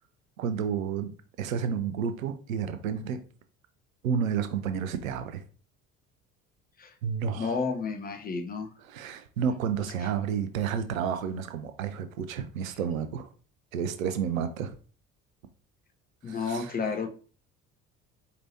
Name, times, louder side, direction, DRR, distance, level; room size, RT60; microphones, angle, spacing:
voice 1, 0.4-1.1 1.4-3.2 4.0-5.4 7.0-7.6 8.9-13.3 13.7-14.7 16.3-16.8, right 7 dB, 75° right, 0.6 m, -31 dB
voice 2, 7.3-8.7 10.0-10.1 16.2-17.1, left 5 dB, 20° left, 0.6 m, -31 dB
4.5 x 3.0 x 2.7 m
figure-of-eight pair, 55°, 41 cm